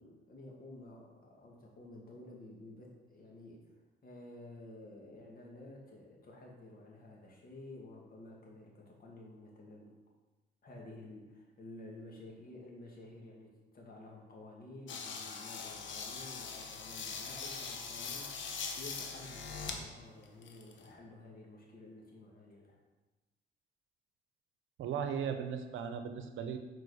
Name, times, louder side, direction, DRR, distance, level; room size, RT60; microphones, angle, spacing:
voice 1, 0.0-3.7 4.0-9.9 10.6-22.8, left 2 dB, 45° left, -2 dB, 2.2 m, -52 dB
sound 1, 14.9-19.8 20.2-20.9, left 5 dB, 70° left, 1.0 m, -42 dB
voice 2, 24.8-26.6, right 7 dB, 80° right, 8 dB, 0.7 m, -37 dB
6.7 x 4.6 x 5.0 m, 1.2 s
cardioid pair, 90°, 20 cm